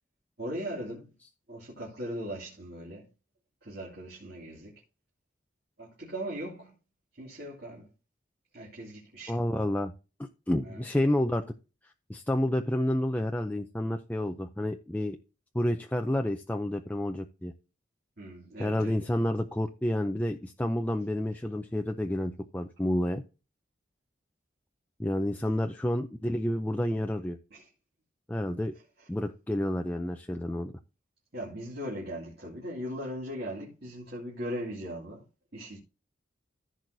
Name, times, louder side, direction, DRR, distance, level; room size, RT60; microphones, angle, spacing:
voice 1, 0.4-1.1 1.5-3.1 3.6-4.7 5.8-6.7 7.2-7.9 8.5-9.4 10.6-10.8 18.2-19.0 25.4-25.5 27.5-27.7 29.0-29.1 31.3-35.2 35.5-35.8, equal, 55° right, 2.5 m, -39 dB
voice 2, 9.3-9.9 10.2-11.4 12.1-15.2 15.5-17.5 18.6-23.2 25.0-27.4 28.3-28.7 29.1-30.7, left 1 dB, 10° left, 0.4 m, -29 dB
14.5 x 6.2 x 2.7 m
head